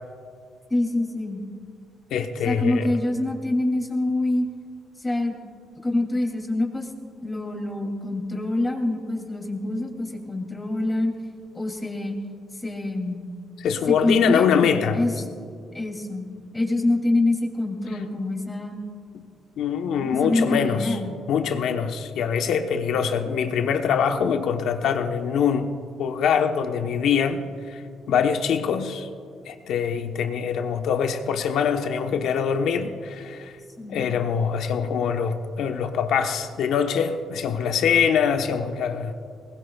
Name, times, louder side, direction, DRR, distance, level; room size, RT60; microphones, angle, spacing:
voice 1, 0.7-1.4 2.4-4.5 5.0-5.4 5.8-6.9 7.2-11.1 11.5-12.2 12.6-13.2 14.0-15.4 15.7-16.3 16.5-18.8 20.0-21.2 33.8-34.0, left 2 dB, 15° left, 1 dB, 2.8 m, -25 dB
voice 2, 2.1-2.9 13.6-15.0 19.1-19.2 19.6-21.0 21.3-27.8 28.1-29.1 29.5-33.5 33.9-39.1, left 7 dB, 80° left, 6 dB, 1.1 m, -24 dB
23.0 x 19.5 x 2.4 m, 2.2 s
cardioid pair, 90°, 0 cm